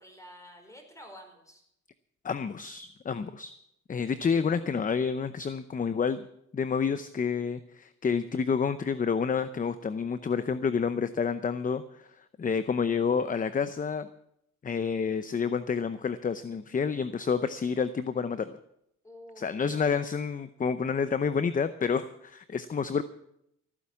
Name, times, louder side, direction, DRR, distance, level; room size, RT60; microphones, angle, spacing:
voice 1, 0.0-1.6 19.0-19.7, equal, 10° left, 4 dB, 4.7 m, -50 dB
voice 2, 2.2-3.5 3.9-6.2 6.5-14.1 14.6-18.6 19.4-23.0, left 6 dB, 25° left, 13 dB, 0.7 m, -29 dB
15.5 x 9.8 x 7.3 m, 0.77 s
cardioid pair, 90°, 30 cm